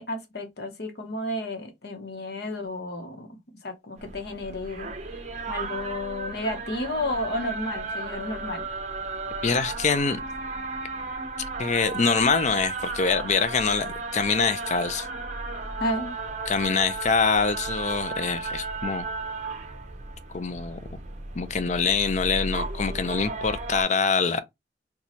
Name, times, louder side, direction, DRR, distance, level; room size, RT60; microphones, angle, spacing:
voice 1, 0.0-4.9 5.5-8.6 15.8-16.1, left 1 dB, 60° left, 0.9 m, -32 dB
sound 1, 4.0-23.8, right 3 dB, 40° right, 0.7 m, -34 dB
voice 2, 9.4-10.2 11.6-15.1 16.5-19.1 20.3-20.8 21.4-24.4, left 5 dB, 40° left, 0.5 m, -24 dB
4.1 x 2.3 x 3.0 m
head